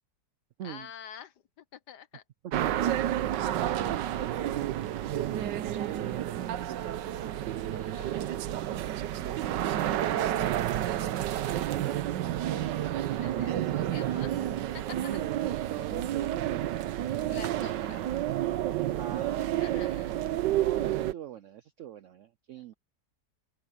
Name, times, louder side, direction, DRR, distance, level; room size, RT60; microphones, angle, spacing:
voice 1, 0.6-2.2 7.7-8.4 13.2-15.2 17.3-18.0 19.5-20.1, left 9 dB, 75° left, 1.6 m, -47 dB
sound 1, 2.5-21.1, right 12 dB, 90° right, 1.4 m, -30 dB
voice 2, 2.6-2.9 3.2-4.8 5.1-7.1 8.8-9.9 10.2-10.9 11.5-12.0 14.9-16.7 19.0-19.9 20.5-22.7, right 11 dB, 75° right, 0.7 m, -41 dB
open air
omnidirectional pair, 1.8 m